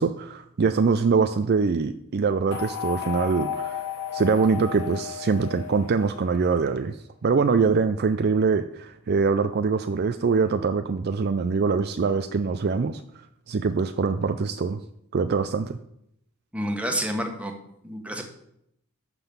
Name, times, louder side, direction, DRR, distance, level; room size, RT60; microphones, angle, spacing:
voice 1, 0.0-3.8 4.1-7.0 7.2-13.0 13.5-14.8 15.1-15.8, right 4 dB, 45° right, 10 dB, 0.4 m, -23 dB
sound 1, 2.5-6.7, left 8 dB, 60° left, 3.7 m, -34 dB
voice 2, 16.5-17.5 17.8-18.3, equal, 5° right, 3 dB, 1.3 m, -29 dB
11.5 x 3.9 x 7.0 m, 0.75 s
head